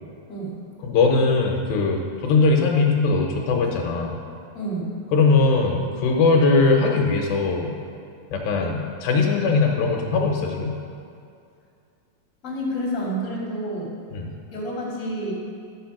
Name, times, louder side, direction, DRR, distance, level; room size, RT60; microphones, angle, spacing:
voice 1, 0.3-0.6 4.5-4.9 12.4-13.9 14.5-15.3, right 1 dB, 25° left, -5 dB, 2.3 m, -29 dB
voice 2, 0.8-4.2 5.1-7.8 8.3-10.7 14.1-14.3, left 4 dB, 80° left, 1 dB, 2.6 m, -20 dB
12.0 x 6.3 x 5.9 m, 2.4 s
omnidirectional pair, 4.3 m